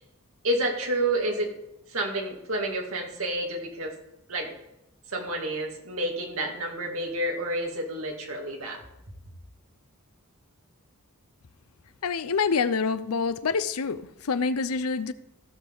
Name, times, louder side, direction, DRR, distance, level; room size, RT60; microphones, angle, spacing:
voice 1, 0.4-1.5 1.9-3.9 4.3-4.5 5.1-8.8, right 1 dB, 70° right, 1 dB, 2.4 m, -29 dB
voice 2, 12.0-15.1, left 5 dB, 80° left, 14 dB, 0.6 m, -26 dB
15.5 x 7.0 x 3.9 m, 0.86 s
head